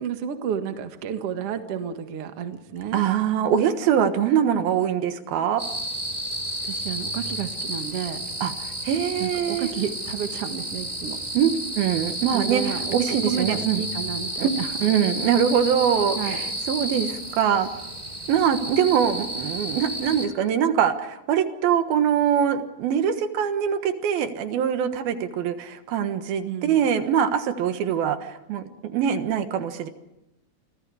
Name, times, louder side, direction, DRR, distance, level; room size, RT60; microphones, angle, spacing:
voice 1, 0.0-3.0 6.6-8.2 9.2-11.2 12.3-12.9 13.2-14.7 16.2-16.4 26.4-26.8, right 8 dB, 50° right, 7 dB, 2.2 m, -31 dB
voice 2, 2.9-5.6 8.4-9.7 11.3-13.8 14.4-14.5 14.8-17.7 18.3-29.9, right 8 dB, 80° right, 8 dB, 3.2 m, -23 dB
sound 1, 5.6-20.3, right 1 dB, 10° right, 2.5 m, -31 dB
29.5 x 25.5 x 4.9 m, 0.91 s
omnidirectional pair, 4.3 m